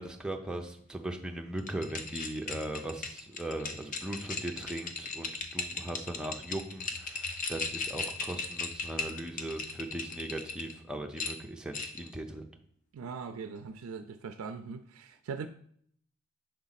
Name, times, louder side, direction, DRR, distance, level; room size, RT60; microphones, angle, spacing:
voice 1, 0.0-12.5, right 1 dB, 5° right, 0.5 m, -39 dB
sound 1, 1.6-10.7 11.2-12.1, left 4 dB, 40° left, 0.6 m, -37 dB
voice 2, 12.9-15.5, right 5 dB, 75° right, 0.4 m, -40 dB
6.3 x 4.1 x 4.0 m
head